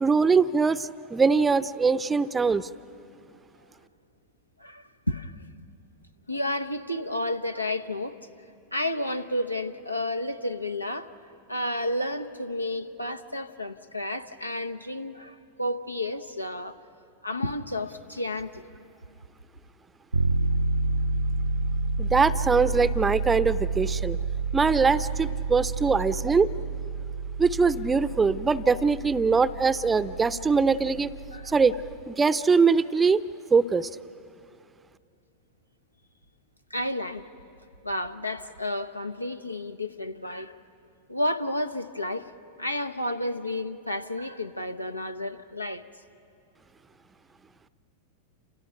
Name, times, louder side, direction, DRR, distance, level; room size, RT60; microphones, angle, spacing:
voice 1, 0.0-2.7 22.0-24.2 24.5-26.5 27.4-31.1 31.4-31.8 32.1-33.2 33.5-33.9, right 5 dB, 15° right, 15 dB, 0.6 m, -22 dB
voice 2, 4.6-5.4 6.3-8.2 8.7-11.1 11.5-16.8 17.2-18.6 20.4-20.5 27.1-27.2 31.3-31.5 36.7-37.2 37.8-40.6 41.1-42.3 42.6-45.8, left 1 dB, 85° left, 8 dB, 0.8 m, -31 dB
sound 1, 20.1-32.0, right 3 dB, 75° right, 0.5 m, -29 dB
30.0 x 28.0 x 5.8 m, 2.6 s
figure-of-eight pair, 90°, 0 cm